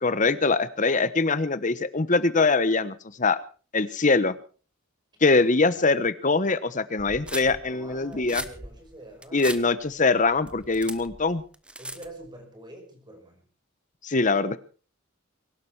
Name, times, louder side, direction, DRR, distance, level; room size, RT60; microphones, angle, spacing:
voice 1, 0.0-3.4 3.7-4.4 5.2-8.4 9.3-11.4 14.0-14.6, left 3 dB, 40° left, 15 dB, 1.0 m, -23 dB
voice 2, 5.3-6.1 7.7-9.7 11.8-13.4, right 1 dB, 20° right, 3 dB, 5.8 m, -46 dB
sound 1, 7.0-12.3, right 1 dB, 5° right, 1.0 m, -39 dB
23.0 x 11.5 x 4.8 m, 0.38 s
head